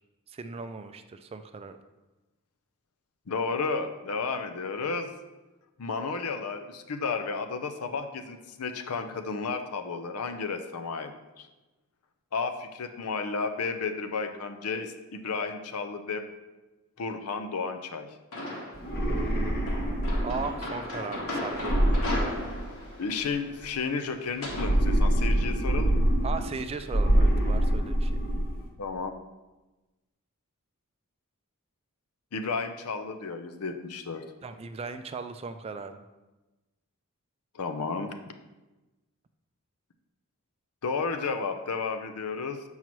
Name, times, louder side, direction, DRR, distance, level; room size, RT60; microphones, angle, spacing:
voice 1, 0.3-1.8 19.1-21.9 26.2-28.1 34.4-36.0, right 4 dB, 25° right, 9 dB, 0.3 m, -38 dB
voice 2, 3.3-5.1 5.8-11.1 11.4-11.5 12.3-16.3 17.0-18.1 23.0-26.1 28.8-29.1 32.3-34.2 37.5-38.2 40.8-42.6, left 4 dB, 80° left, 7 dB, 0.6 m, -32 dB
sound 1, 18.3-18.9 19.7-24.7, left 1 dB, 65° left, 1.5 m, -36 dB
sound 2, 18.7-20.7 21.5-23.0 24.4-26.6 26.9-28.6, right 1 dB, 45° left, 0.9 m, -25 dB
7.5 x 5.5 x 3.1 m, 1.1 s
head